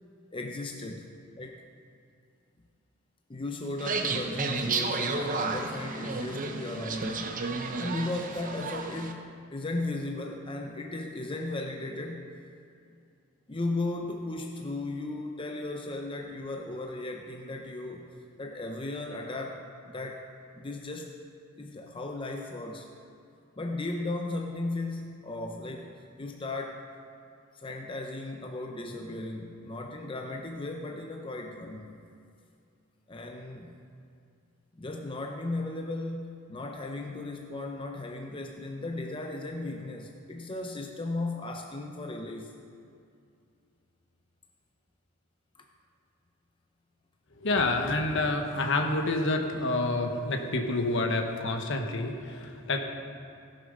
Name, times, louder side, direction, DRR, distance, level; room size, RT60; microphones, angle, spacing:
voice 1, 0.3-1.6 3.3-7.4 7.8-12.3 13.5-19.7 19.9-21.2 21.6-22.9 23.6-26.9 27.5-32.0 33.1-33.7 34.7-42.6 45.6-45.7, left 2 dB, 25° left, 2 dB, 0.7 m, -36 dB
sound 1, 3.8-9.1, right 3 dB, 40° right, 0.8 m, -32 dB
voice 2, 47.4-52.8, left 2 dB, 60° left, 4 dB, 1.2 m, -28 dB
16.5 x 7.6 x 5.3 m, 2.5 s
head